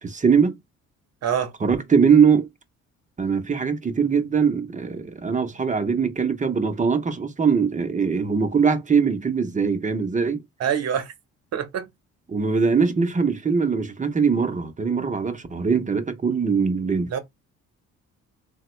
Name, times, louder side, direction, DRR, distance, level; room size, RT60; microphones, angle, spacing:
voice 1, 0.0-0.6 1.6-2.5 3.2-10.4 12.3-17.2, right 6 dB, 25° right, 0.7 m, -21 dB
voice 2, 1.2-1.5 10.6-11.1 11.5-11.9 17.1-17.2, right 8 dB, 55° right, 0.9 m, -25 dB
3.3 x 2.1 x 3.0 m
cardioid pair, 90°, 30 cm